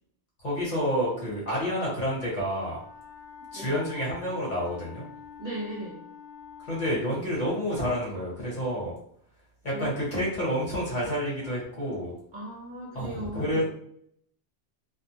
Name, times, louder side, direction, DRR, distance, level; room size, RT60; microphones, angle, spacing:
voice 1, 0.4-2.8 3.5-5.1 6.7-8.9 9.6-12.1 12.9-13.6, equal, 40° left, -6 dB, 1.2 m, -29 dB
Wind instrument woodwind instrument, 2.6-7.0, left 7 dB, 20° right, 0.3 m, -46 dB
voice 2, 5.4-6.0 9.7-10.1 12.3-13.6, right 1 dB, 45° right, -6 dB, 0.8 m, -37 dB
2.3 x 2.2 x 2.9 m, 0.66 s
omnidirectional pair, 1.2 m